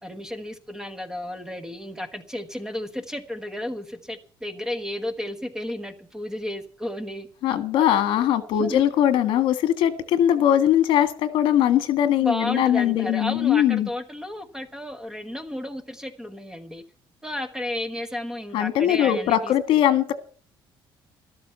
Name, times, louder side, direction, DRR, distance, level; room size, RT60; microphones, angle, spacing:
voice 1, 0.0-7.3 8.6-8.8 12.2-16.8 17.2-19.5, left 1 dB, 5° right, 1.3 m, -32 dB
voice 2, 7.4-13.9 18.5-20.1, left 11 dB, 75° left, 1.6 m, -21 dB
13.0 x 13.0 x 5.8 m
cardioid pair, 155°, 9 cm